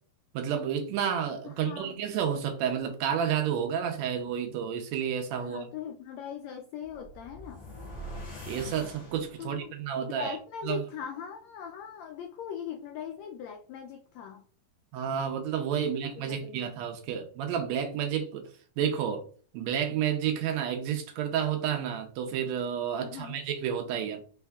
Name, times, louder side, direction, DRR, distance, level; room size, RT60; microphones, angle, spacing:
voice 1, 0.3-5.7 8.5-10.4 10.6-10.8 14.9-18.5 18.8-19.3 19.5-24.2, right 8 dB, 75° right, 1.7 m, -30 dB
voice 2, 1.4-1.9 5.3-7.6 9.4-14.4 15.8-16.8 23.0-23.4, left 7 dB, 85° left, 1.5 m, -40 dB
sound 1, 6.8-9.7, equal, 25° left, 1.3 m, -43 dB
4.4 x 4.2 x 2.3 m
omnidirectional pair, 3.6 m